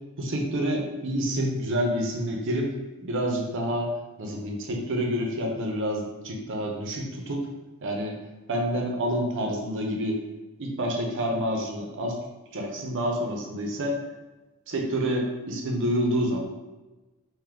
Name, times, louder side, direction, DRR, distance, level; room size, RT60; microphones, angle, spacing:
voice 1, 0.2-2.7 3.0-3.9 4.2-7.5 7.8-8.2 8.5-10.2 10.6-12.2 12.5-14.0 14.7-16.4, equal, 55° right, 1 dB, 0.7 m, -28 dB
3.7 x 2.7 x 3.4 m, 1.1 s
head